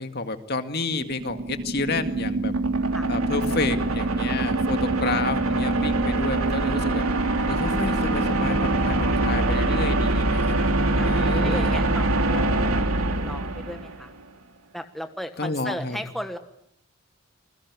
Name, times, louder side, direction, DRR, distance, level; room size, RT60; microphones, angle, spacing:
voice 1, 0.0-2.5 3.1-7.0 7.5-10.6 11.0-11.8 15.4-16.0, left 3 dB, 50° left, 8 dB, 2.1 m, -30 dB
sound 1, 0.9-14.1, right 2 dB, 80° right, 2.8 m, -24 dB
voice 2, 11.4-14.1 14.7-16.4, equal, ahead, 7 dB, 1.4 m, -36 dB
28.0 x 21.0 x 9.8 m, 0.76 s
head